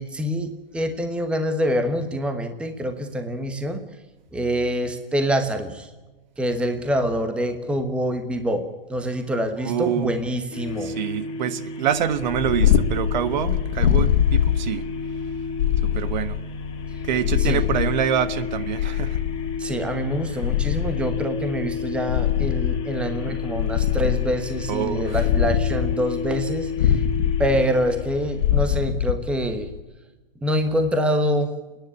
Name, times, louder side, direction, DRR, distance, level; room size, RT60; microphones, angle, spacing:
voice 1, 0.0-3.8 4.3-5.9 6.4-8.6 8.9-10.9 17.4-17.6 19.6-27.0 27.4-29.7 30.4-31.5, equal, 5° right, 7 dB, 1.2 m, -25 dB
voice 2, 9.6-10.1 10.8-14.9 15.8-16.4 17.0-19.2 20.4-20.5 24.7-25.2, right 9 dB, 50° right, 13 dB, 1.4 m, -26 dB
sound 1, 10.5-28.8, left 4 dB, 20° left, 2.4 m, -33 dB
Purr, 12.1-29.8, left 10 dB, 60° left, 2.1 m, -24 dB
28.0 x 10.5 x 9.6 m, 1.1 s
hypercardioid pair, 160°, 29 cm